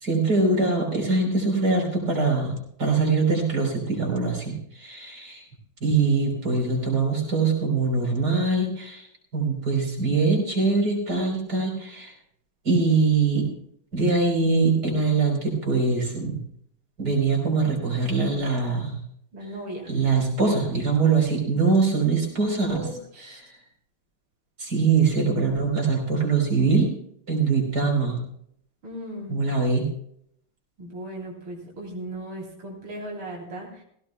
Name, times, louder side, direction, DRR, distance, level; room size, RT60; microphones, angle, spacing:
voice 1, 0.0-2.5 2.8-5.4 5.8-9.1 9.3-12.1 12.6-13.5 13.9-16.4 17.0-19.0 19.9-22.9 23.4-23.5 24.6-26.9 27.3-28.2 29.3-29.9, right 4 dB, 50° right, 1 dB, 4.3 m, -23 dB
voice 2, 19.3-19.9 22.7-23.4 28.8-29.4 30.8-33.8, right 1 dB, 85° right, -2 dB, 3.9 m, -37 dB
17.5 x 16.0 x 2.2 m, 0.69 s
omnidirectional pair, 2.2 m